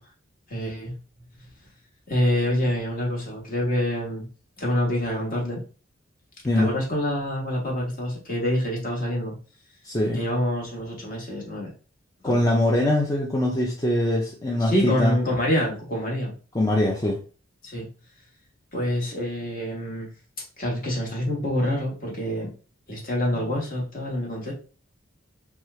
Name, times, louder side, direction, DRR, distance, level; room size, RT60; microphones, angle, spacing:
voice 1, 0.5-1.0 2.1-4.3 4.6-5.6 6.6-9.3 10.1-11.7 12.2-12.4 14.6-16.3 17.6-17.9 18.7-20.1 20.6-22.5 22.9-24.5, left 1 dB, 45° left, -2 dB, 1.2 m, -26 dB
voice 2, 9.8-10.2 12.2-15.2 16.5-17.2, left 1 dB, 15° left, -3 dB, 0.4 m, -22 dB
3.0 x 2.3 x 3.2 m, 0.37 s
head